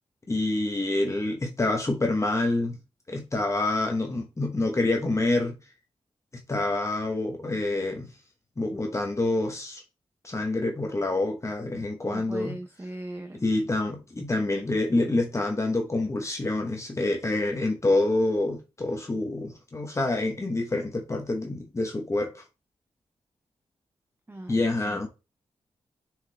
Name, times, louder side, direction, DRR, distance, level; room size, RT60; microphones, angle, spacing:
voice 1, 0.3-2.8 3.1-5.6 6.5-8.1 8.6-9.8 10.2-12.6 13.4-22.4 24.5-25.1, left 2 dB, 25° left, 1.1 m, -27 dB
voice 2, 12.0-13.4 24.3-25.1, right 1 dB, 20° right, 0.8 m, -40 dB
6.6 x 4.7 x 3.4 m
cardioid pair, 85°, 11 cm